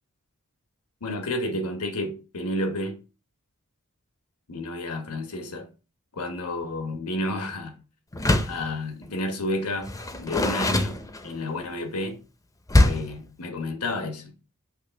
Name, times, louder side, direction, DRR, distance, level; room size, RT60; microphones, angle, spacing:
voice 1, 1.0-3.0 4.5-5.7 6.1-7.8 8.4-9.9 10.2-12.2 12.8-14.3, left 1 dB, 85° left, 1.2 m, -31 dB
Door, 8.1-8.7 9.8-11.5 12.7-13.2, left 1 dB, 15° left, 0.6 m, -23 dB
6.6 x 3.2 x 5.7 m
head